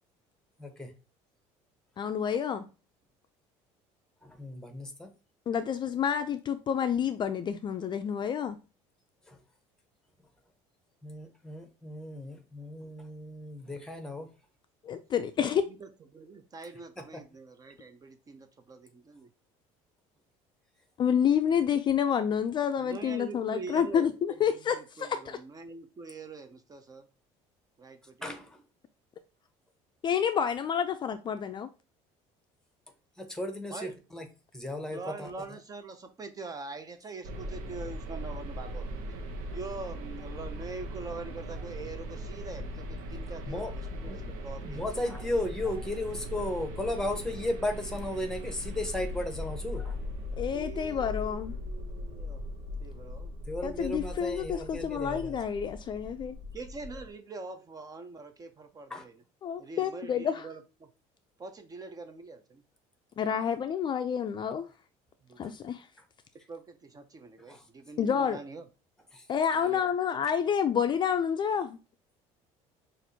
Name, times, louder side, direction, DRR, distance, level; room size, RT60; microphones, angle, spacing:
voice 1, 0.6-0.9 4.2-5.1 9.3-9.4 11.0-14.3 28.2-28.6 33.2-34.3 34.5-35.3 43.5-43.7 44.1-44.2 44.6-50.0 53.5-55.4 58.9-59.0 65.4-65.5 67.5-67.6 69.1-69.3, left 1 dB, 5° left, 0.9 m, -35 dB
voice 2, 2.0-2.6 5.5-8.6 14.8-15.6 21.0-25.4 30.0-31.7 50.4-51.5 53.6-56.4 59.4-60.4 63.2-64.7 65.4-65.9 68.0-68.4 69.3-71.8, left 8 dB, 35° left, 0.4 m, -29 dB
voice 3, 15.7-19.3 22.8-27.1 27.8-28.2 33.7-33.9 34.9-38.9 39.5-45.1 50.5-52.4 52.8-53.4 56.5-59.2 59.6-60.9 61.4-62.6 65.2-65.4 66.3-68.7 69.5-69.9, right 3 dB, 25° right, 0.5 m, -44 dB
sound 1, 37.2-57.1, left 1 dB, 80° right, 0.9 m, -39 dB
5.9 x 2.5 x 2.7 m
cardioid pair, 115°, 13 cm